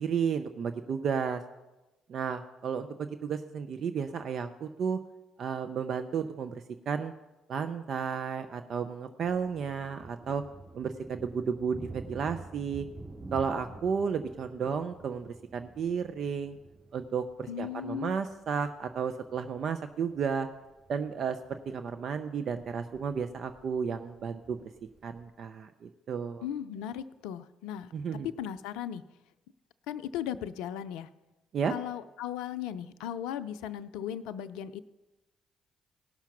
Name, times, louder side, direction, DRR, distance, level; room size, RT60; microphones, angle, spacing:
voice 1, 0.0-1.4 2.1-5.0 5.4-7.1 7.5-10.4 10.7-12.9 13.3-16.6 16.9-20.5 20.9-24.6 25.0-26.4 27.9-28.3 31.5-31.7, right 6 dB, 55° right, 9 dB, 0.6 m, -33 dB
sound 1, 9.2-25.3, right 3 dB, 35° right, 3.2 m, -49 dB
voice 2, 17.5-18.2 26.4-27.9 28.2-29.0 29.9-31.1 31.7-34.8, left 10 dB, 75° left, 13 dB, 0.4 m, -37 dB
17.5 x 5.8 x 5.8 m, 1.1 s
hypercardioid pair, 50°, 0 cm